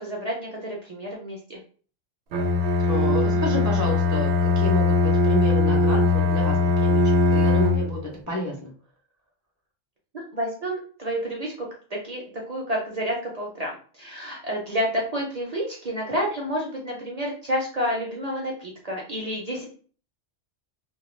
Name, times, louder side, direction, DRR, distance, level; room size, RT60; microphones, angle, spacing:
voice 1, 0.0-1.6 10.1-19.7, equal, 50° right, -1 dB, 0.5 m, -30 dB
Bowed string instrument, 2.3-8.0, left 3 dB, 70° right, 0.8 m, -20 dB
voice 2, 2.9-8.0 8.3-8.7, left 1 dB, 25° left, -2 dB, 0.4 m, -30 dB
2.3 x 2.2 x 3.0 m, 0.42 s
omnidirectional pair, 1.1 m